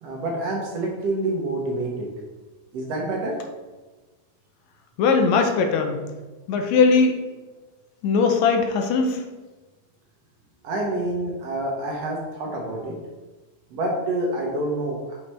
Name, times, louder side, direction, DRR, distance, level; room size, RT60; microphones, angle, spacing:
voice 1, 0.0-2.1 2.7-3.3 10.6-12.9 13.7-15.2, right 2 dB, 65° right, -1 dB, 1.7 m, -27 dB
voice 2, 5.0-6.0 6.5-7.2 8.0-9.2, left 4 dB, 75° left, 4 dB, 1.7 m, -19 dB
6.1 x 5.2 x 4.2 m, 1.2 s
omnidirectional pair, 3.7 m